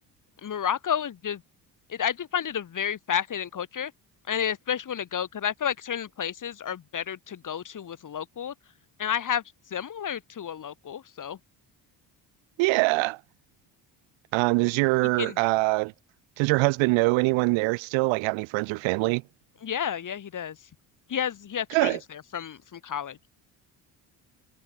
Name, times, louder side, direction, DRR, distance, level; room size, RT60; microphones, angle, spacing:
voice 1, 0.4-1.4 1.9-3.9 4.3-8.5 9.0-9.4 9.7-11.4 15.2-15.4 19.6-20.6 21.1-23.2, left 8 dB, 45° left, 1.5 m, -31 dB
voice 2, 12.6-13.2 14.3-15.9 16.4-19.2 21.7-22.0, right 26 dB, 85° right, 0.6 m, -23 dB
supercardioid pair, 75°, 45 cm